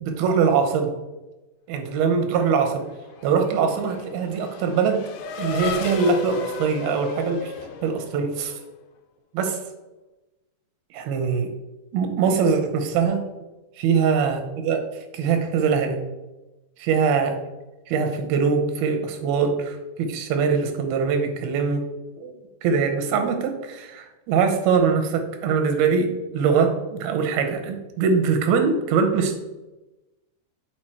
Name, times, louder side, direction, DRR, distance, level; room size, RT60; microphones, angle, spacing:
voice 1, 0.0-0.9 1.7-2.8 3.2-5.0 5.4-7.5 7.8-8.5 9.3-9.6 10.9-11.5 11.9-13.2 13.8-14.8 15.1-16.0 16.8-17.4 17.9-21.9 22.2-22.3 22.6-29.4, right 5 dB, 85° right, 5 dB, 2.7 m, -22 dB
Race car auto racing / Accelerating revving vroom, 2.6-8.7, left 5 dB, 80° left, 1.9 m, -34 dB
6.0 x 4.6 x 4.4 m, 1.1 s
omnidirectional pair, 4.2 m